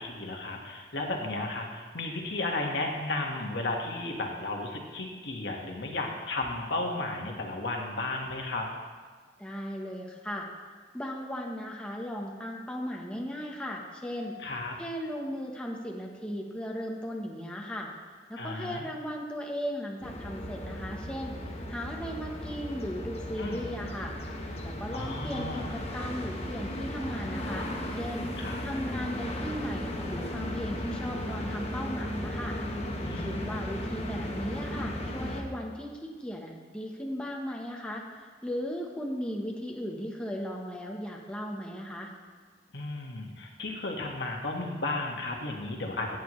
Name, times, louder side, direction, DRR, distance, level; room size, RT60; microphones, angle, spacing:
voice 1, 0.0-8.7 14.4-14.7 18.4-18.8 23.4-23.7 24.9-25.7 28.4-28.6 33.0-33.5 42.7-46.2, left 2 dB, 70° left, 1 dB, 1.5 m, -34 dB
voice 2, 9.4-10.5 10.9-14.4 14.8-17.9 18.3-24.2 24.6-28.3 28.6-32.6 33.2-42.1, equal, 5° left, -1 dB, 1.0 m, -37 dB
sound 1, 20.0-35.4, left 1 dB, 35° left, 1.2 m, -35 dB
15.5 x 9.2 x 3.1 m, 1.5 s
head